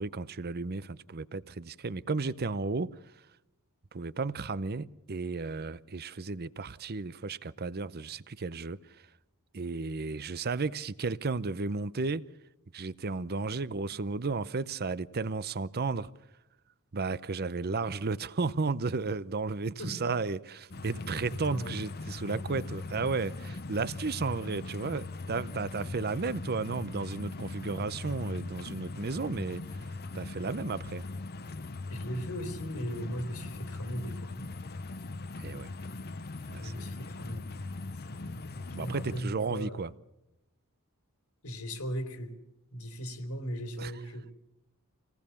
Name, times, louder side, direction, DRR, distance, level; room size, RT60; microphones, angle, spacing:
voice 1, 0.0-3.3 3.9-9.1 9.5-12.3 12.7-16.1 16.9-31.0 35.4-35.7 36.5-37.0 38.7-39.9 43.8-43.9, right 4 dB, 45° right, 0.7 m, -34 dB
voice 2, 19.8-20.1 20.7-21.0 21.4-21.8 22.3-22.4 31.9-34.5 36.5-37.5 37.9-39.8 41.4-42.3 42.7-44.3, equal, 80° left, 3.4 m, -38 dB
sound 1, 20.7-39.2, left 3 dB, 45° left, 0.8 m, -40 dB
27.0 x 18.5 x 7.0 m
head